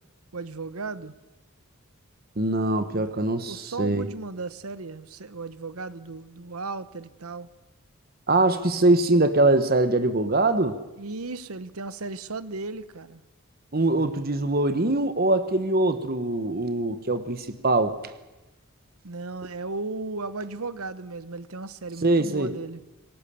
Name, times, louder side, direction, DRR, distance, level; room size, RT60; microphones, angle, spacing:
voice 1, 0.3-1.1 2.8-7.5 11.0-13.2 19.0-22.8, right 3 dB, 85° right, 15 dB, 1.0 m, -36 dB
voice 2, 2.4-4.1 8.3-10.8 13.7-18.0 22.0-22.5, right 2 dB, 45° right, 11 dB, 1.1 m, -23 dB
27.0 x 18.0 x 7.0 m, 1.0 s
head